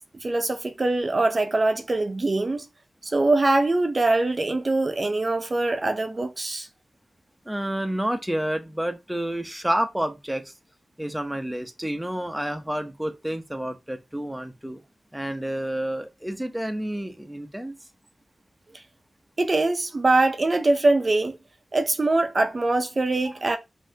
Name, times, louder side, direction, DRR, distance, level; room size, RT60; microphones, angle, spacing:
voice 1, 0.2-2.7 3.0-6.7 19.4-21.4 21.7-23.6, right 2 dB, 40° right, 0.6 m, -23 dB
voice 2, 7.5-10.5 11.0-14.8 15.1-17.7, right 1 dB, 5° right, 0.7 m, -29 dB
5.4 x 2.7 x 2.7 m
wide cardioid pair, 85°, 0 cm